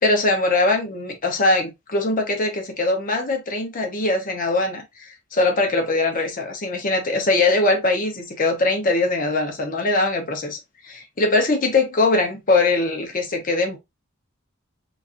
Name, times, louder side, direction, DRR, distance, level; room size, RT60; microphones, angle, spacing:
voice 1, 0.0-13.8, left 2 dB, 40° left, 0.9 m, -21 dB
3.0 x 2.5 x 2.5 m
head